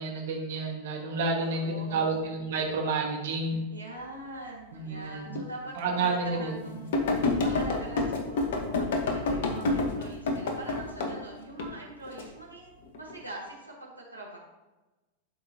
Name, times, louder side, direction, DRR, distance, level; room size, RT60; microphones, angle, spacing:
voice 1, 0.0-3.6 4.7-5.4 5.8-6.9, right 3 dB, 55° right, 0 dB, 1.8 m, -30 dB
voice 2, 1.3-2.3 3.7-7.0 7.4-14.4, right 2 dB, 85° right, -5 dB, 1.9 m, -43 dB
sound 1, 5.4-5.5 6.0-6.1 6.9-11.1 11.6-12.2 12.9-13.2, left 3 dB, 55° left, 1.2 m, -28 dB
12.5 x 4.8 x 2.9 m, 1.1 s
figure-of-eight pair, 90°, 0 cm